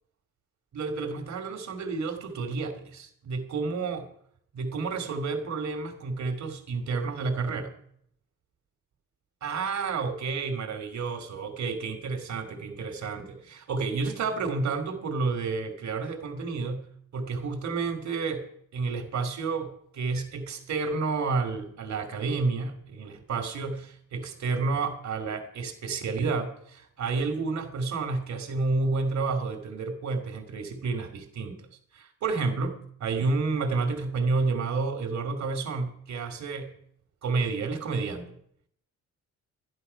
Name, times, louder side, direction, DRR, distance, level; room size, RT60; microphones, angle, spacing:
voice 1, 0.7-4.1 4.5-7.8 9.4-16.8 17.1-18.5 18.7-31.6 31.9-36.7 37.2-38.4, right 4 dB, 65° right, 6 dB, 2.5 m, -30 dB
11.5 x 11.0 x 5.6 m, 0.68 s
cardioid pair, 90°, 30 cm